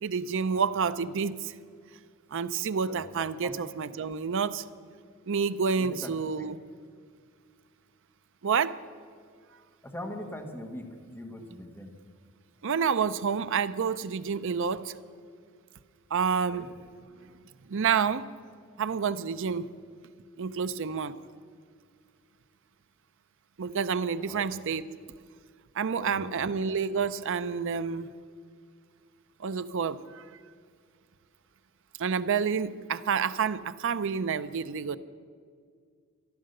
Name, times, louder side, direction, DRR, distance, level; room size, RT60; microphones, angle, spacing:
voice 1, 0.0-1.5 2.3-4.6 5.3-6.6 8.4-8.8 12.6-14.9 16.1-16.7 17.7-18.2 18.8-19.7 20.4-21.2 23.6-24.8 25.8-28.1 29.4-30.2 32.0-35.0, right 6 dB, 65° right, 14 dB, 0.5 m, -29 dB
voice 2, 5.8-6.1 9.8-10.9 11.1-11.9 16.5-16.7 24.2-24.4 25.9-26.6, left 1 dB, 10° left, 3 dB, 1.4 m, -41 dB
14.0 x 11.5 x 6.6 m, 2.1 s
head